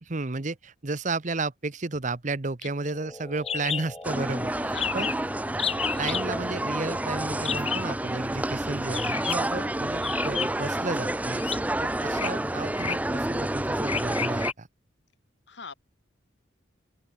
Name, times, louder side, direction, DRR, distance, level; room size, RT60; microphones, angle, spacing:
voice 1, 0.0-5.1 6.0-11.5 11.8-14.7, right 3 dB, 40° right, 1.0 m, -33 dB
sound 1, 2.7-7.7, left 1 dB, 15° left, 3.8 m, -44 dB
sound 2, 3.5-3.8 4.1-4.2 4.4-4.5 4.8-5.2 5.6-6.3 7.4-7.9 8.9-9.5 10.0-10.7 11.4-11.6 12.1-12.3 12.8-13.1 13.9-14.5, left 7 dB, 30° left, 0.8 m, -31 dB
sound 3, 4.0-14.5, right 1 dB, 10° right, 0.5 m, -29 dB
voice 2, 4.7-5.1 15.5-15.7, left 6 dB, 60° left, 1.5 m, -41 dB
head